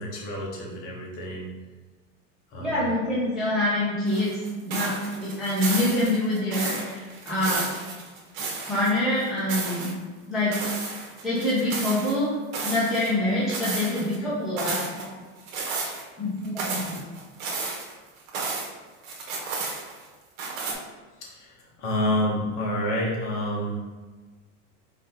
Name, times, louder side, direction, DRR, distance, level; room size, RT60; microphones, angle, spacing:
voice 1, 0.0-1.5 2.5-2.8 21.2-23.8, left 1 dB, 40° left, -2 dB, 1.0 m, -28 dB
voice 2, 2.6-4.3 4.6-7.6 8.7-9.9 10.3-10.6 11.2-12.3 12.6-15.2 16.2-17.0, left 1 dB, ahead, -11 dB, 0.4 m, -26 dB
sound 1, 4.1-8.9 9.2-9.9 10.5-12.1 12.5-13.1 13.5-14.2 14.6-15.0 15.5-16.0 16.4-18.7 19.0-20.0 20.4-20.7, right 4 dB, 90° right, 1.1 m, -32 dB
4.1 x 2.7 x 3.6 m, 1.3 s
supercardioid pair, 170°, 39 cm